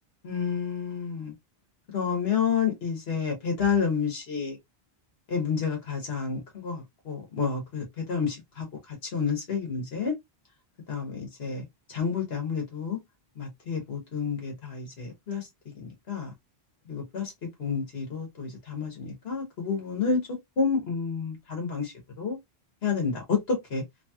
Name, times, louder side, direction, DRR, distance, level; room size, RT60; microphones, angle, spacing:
voice 1, 0.2-1.3 1.9-4.6 5.3-10.1 10.9-13.0 13.4-15.5 15.7-16.3 16.9-17.3 17.6-20.2 20.6-22.4 22.8-23.8, left 6 dB, 70° left, 1.3 m, -30 dB
3.1 x 2.8 x 2.2 m
omnidirectional pair, 1.1 m